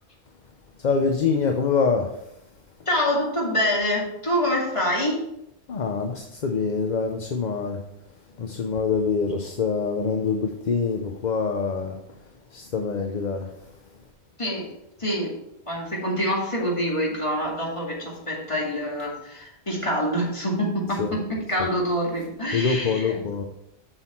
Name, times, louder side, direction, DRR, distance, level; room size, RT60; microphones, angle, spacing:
voice 1, 0.8-2.2 5.7-7.8 8.4-12.0 12.5-13.5 21.0-21.1 22.5-23.4, left 5 dB, 50° left, 4 dB, 0.8 m, -25 dB
voice 2, 2.9-5.2 8.3-8.5 14.4-14.7 15.0-15.3 15.7-23.2, equal, 30° left, -3 dB, 2.2 m, -26 dB
7.7 x 6.2 x 4.4 m, 0.82 s
omnidirectional pair, 1.1 m